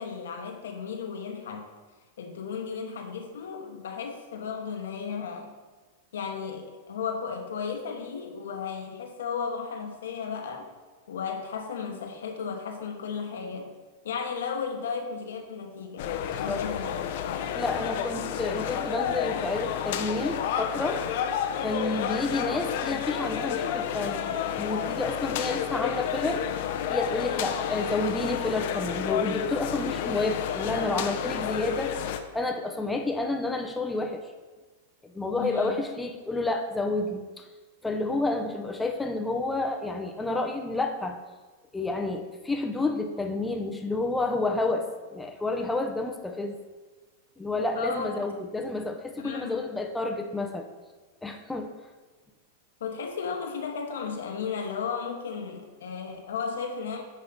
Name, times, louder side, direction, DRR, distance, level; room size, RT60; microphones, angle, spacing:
voice 1, 0.0-1.7 2.2-5.6 6.1-10.7 11.1-13.7 14.0-16.1 16.4-17.4 22.4-22.5 35.3-35.8 47.7-48.1 49.2-49.6 52.8-57.0, left 6 dB, 80° left, 3 dB, 1.0 m, -34 dB
sound 1, 16.0-32.2, left 9 dB, 60° left, 0.6 m, -30 dB
voice 2, 16.3-16.6 17.5-21.0 21.6-24.3 24.6-26.4 26.9-31.9 32.3-34.3 35.0-37.4 37.8-41.2 41.7-46.6 47.4-50.6 51.2-51.7, left 2 dB, 10° left, 4 dB, 0.6 m, -30 dB
9.3 x 3.2 x 4.0 m, 1.3 s
hypercardioid pair, 110°, 0 cm